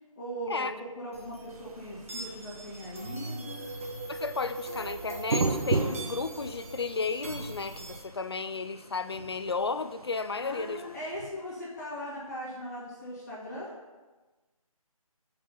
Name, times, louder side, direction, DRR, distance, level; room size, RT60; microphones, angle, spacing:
voice 1, 0.1-3.6 10.4-13.7, equal, 30° left, -8 dB, 1.9 m, -39 dB
sound 1, 1.1-8.0, right 2 dB, 25° right, 0.7 m, -40 dB
sound 2, 1.5-11.3, right 3 dB, 85° right, 0.8 m, -37 dB
voice 2, 4.1-10.8, left 4 dB, 45° left, 11 dB, 0.4 m, -33 dB
5.8 x 4.8 x 5.4 m, 1.2 s
figure-of-eight pair, 170°, 19 cm